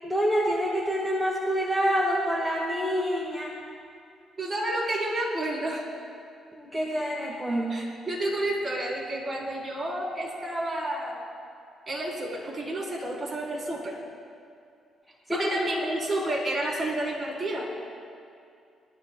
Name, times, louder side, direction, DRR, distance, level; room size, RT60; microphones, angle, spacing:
voice 1, 0.0-3.5 6.6-7.9 15.3-15.6, equal, ahead, -2 dB, 1.6 m, -27 dB
voice 2, 4.4-5.9 7.7-11.2 11.9-14.0 15.3-17.7, right 1 dB, 25° right, -3 dB, 3.8 m, -30 dB
22.5 x 13.5 x 2.3 m, 2.4 s
cardioid pair, 90°, 0 cm